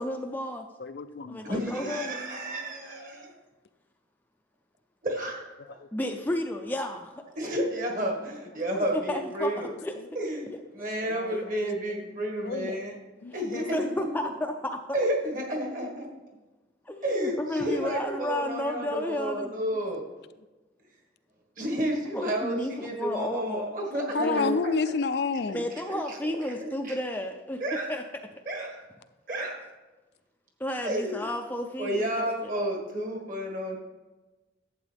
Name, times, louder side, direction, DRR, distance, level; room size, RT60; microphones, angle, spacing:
voice 1, 0.0-0.6 1.3-2.4 3.1-3.2 5.9-7.2 8.7-9.5 9.8-9.9 11.3-11.4 12.6-12.8 13.3-14.8 16.9-19.5 22.1-23.7 24.2-24.6 25.5-27.6 27.9-28.0 30.6-32.5, left 1 dB, 10° left, 3 dB, 0.4 m, -32 dB
voice 2, 0.8-2.0 5.8-5.9 11.0-11.4 12.4-12.7 13.2-13.4 24.1-25.7, left 4 dB, 65° left, 11 dB, 0.4 m, -30 dB
voice 3, 1.4-3.3 5.0-5.5 7.4-9.7 10.2-13.0 13.3-14.1 14.9-16.1 17.0-20.1 21.6-24.7 25.5-25.6 25.9-26.3 26.6-27.0 27.6-27.9 28.5-28.8 29.3-29.7 30.8-31.3 31.8-33.8, right 1 dB, 45° right, 1 dB, 1.7 m, -31 dB
12.0 x 8.2 x 3.5 m, 1.2 s
head